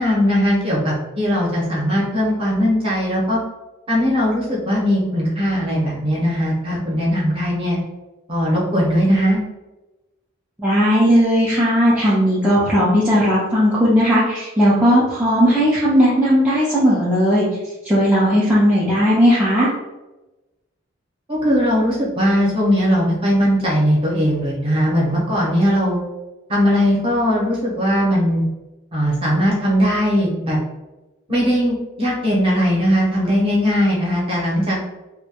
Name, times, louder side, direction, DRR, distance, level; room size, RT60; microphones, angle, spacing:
voice 1, 0.0-3.4 3.9-7.8 8.3-9.4 21.3-26.0 26.5-28.4 28.9-30.6 31.3-35.0, equal, 25° right, -5 dB, 0.7 m, -19 dB
voice 2, 10.6-17.5 17.8-19.7, equal, 5° right, -9 dB, 0.4 m, -16 dB
2.2 x 2.1 x 2.8 m, 1.1 s
head